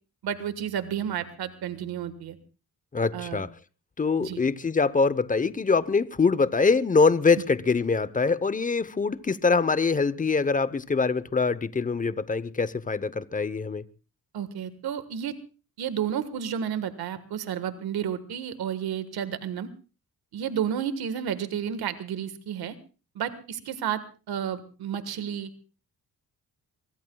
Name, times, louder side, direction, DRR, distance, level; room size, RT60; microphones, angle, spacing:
voice 1, 0.2-2.4 3.1-3.4 4.2-4.4 14.3-15.3 15.8-19.7 20.3-22.8 23.1-24.0 24.3-25.5, right 9 dB, 90° right, 1.5 m, -31 dB
voice 2, 2.9-3.5 4.0-13.8, left 4 dB, 20° left, 0.8 m, -24 dB
24.0 x 23.0 x 2.3 m
cardioid pair, 100°, 37 cm